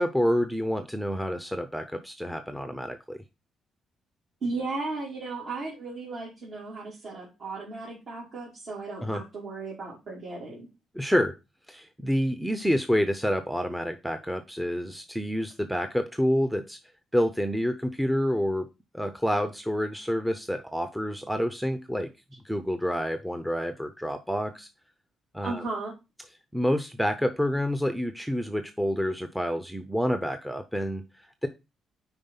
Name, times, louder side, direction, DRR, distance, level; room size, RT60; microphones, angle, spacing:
voice 1, 0.0-3.2 9.0-9.2 10.9-11.3 11.7-16.8 17.1-18.7 18.9-22.1 22.4-24.7 25.3-25.6 26.5-31.5, equal, ahead, 9 dB, 0.6 m, -28 dB
voice 2, 4.4-10.7 25.4-25.9, right 3 dB, 60° right, -5 dB, 2.9 m, -35 dB
5.3 x 4.8 x 5.5 m, 0.26 s
cardioid pair, 90°, 0 cm